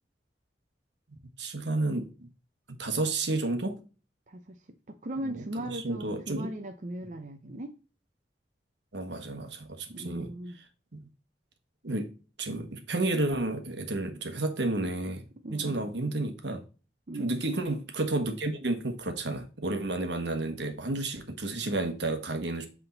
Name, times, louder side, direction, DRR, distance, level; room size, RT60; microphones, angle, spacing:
voice 1, 1.4-2.3 2.8-3.8 5.2-5.4 5.6-6.5 8.9-10.3 10.9-11.1 11.8-12.1 12.4-16.6 17.2-22.7, right 2 dB, 80° right, 1.3 m, -31 dB
voice 2, 4.3-4.6 4.9-7.7 9.9-10.6 15.4-15.9 17.1-17.3, right 1 dB, 45° right, 0.7 m, -38 dB
8.1 x 3.7 x 3.9 m
head